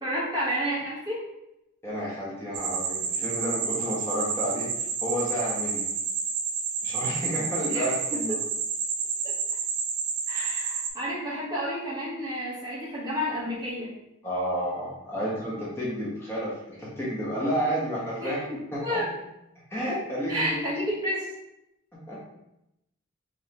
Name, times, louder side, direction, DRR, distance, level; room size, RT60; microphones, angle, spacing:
voice 1, 0.0-1.2 7.7-8.2 9.2-9.3 10.3-13.9 18.2-19.1 20.3-21.3, equal, 20° right, -7 dB, 1.1 m, -31 dB
voice 2, 1.8-5.8 6.8-8.4 14.2-18.4 18.9-19.1 19.7-20.6 21.9-22.2, equal, 10° left, -7 dB, 1.1 m, -31 dB
sound 1, 2.5-10.9, right 6 dB, 55° right, 0.5 m, -30 dB
5.2 x 2.8 x 2.9 m, 0.85 s
head